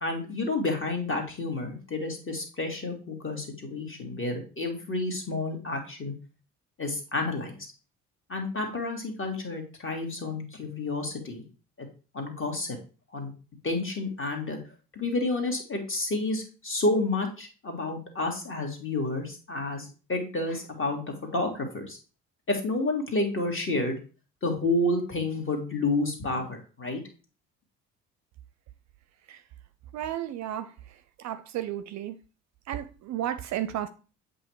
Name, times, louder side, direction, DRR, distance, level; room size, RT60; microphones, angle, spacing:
voice 1, 0.0-6.1 6.8-7.7 8.3-11.4 11.8-11.9 12.1-12.8 13.1-13.3 13.6-14.6 14.9-21.0 21.3-22.0 22.5-24.0 24.4-27.0, left 2 dB, 30° left, 2.0 m, -30 dB
voice 2, 29.9-30.7 31.2-32.2 32.7-33.9, right 11 dB, 45° right, 0.5 m, -33 dB
7.6 x 2.7 x 4.6 m
figure-of-eight pair, 50°, 39 cm